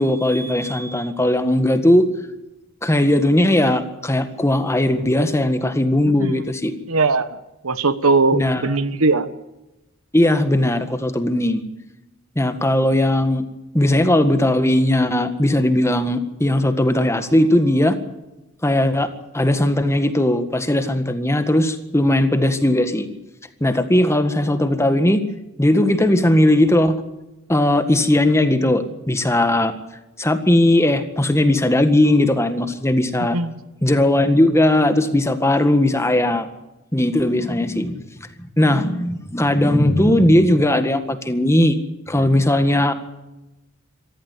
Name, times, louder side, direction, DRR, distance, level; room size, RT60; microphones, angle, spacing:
voice 1, 0.0-2.1 2.8-6.7 8.3-8.7 10.1-11.6 12.4-13.4 13.7-18.0 18.6-19.1 19.3-23.1 23.6-25.2 25.6-27.0 27.5-29.7 30.2-33.4 33.8-36.5 36.9-38.0 38.6-41.8 42.1-42.9, left 1 dB, 15° left, 9 dB, 1.8 m, -18 dB
voice 2, 6.0-6.4 6.9-7.4 7.6-9.3 33.3-33.6, right 3 dB, 75° right, 13 dB, 1.3 m, -19 dB
25.5 x 14.0 x 8.4 m, 0.98 s
head